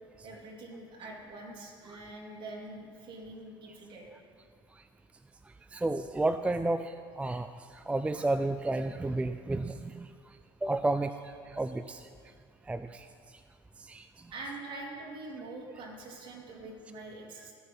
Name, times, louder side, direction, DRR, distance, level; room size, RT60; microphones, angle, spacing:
voice 1, 0.2-4.0 14.3-17.5, right 2 dB, 45° right, -2 dB, 3.0 m, -44 dB
voice 2, 5.5-12.1 12.7-13.4 13.8-14.3, right 2 dB, 10° right, 10 dB, 0.4 m, -33 dB
17.5 x 6.3 x 5.5 m, 2.2 s
supercardioid pair, 85°, 11 cm